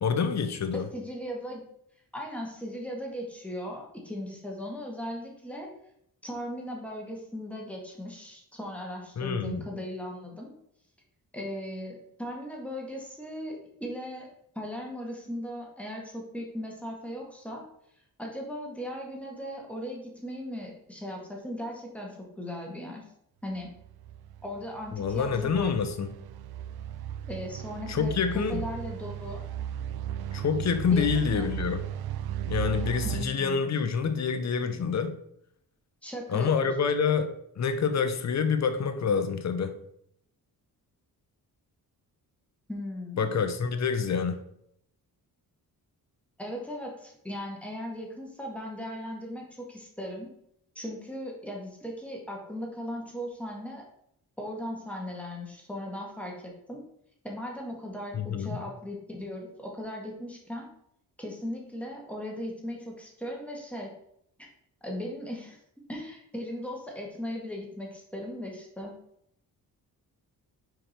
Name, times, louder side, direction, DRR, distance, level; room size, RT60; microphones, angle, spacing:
voice 1, 0.0-0.9 9.2-9.6 24.9-26.1 27.9-28.6 30.3-31.8 32.5-35.1 36.3-39.7 43.2-44.4 58.1-58.6, left 6 dB, 45° left, 0.8 m, -27 dB
voice 2, 0.7-1.6 2.1-5.7 6.2-10.5 11.3-14.3 14.6-17.6 18.2-23.1 23.4-23.7 24.4-25.8 27.3-29.5 30.9-31.5 33.1-33.8 36.0-36.7 42.7-43.4 46.4-50.3 50.8-53.9 54.4-56.8 57.2-60.7 61.2-63.9 64.4-64.5 64.8-65.6 65.9-68.9, equal, 5° left, 1.7 m, -38 dB
sound 1, 23.6-33.3, right 10 dB, 85° right, 0.5 m, -36 dB
5.1 x 4.8 x 4.5 m
cardioid pair, 110°, 37 cm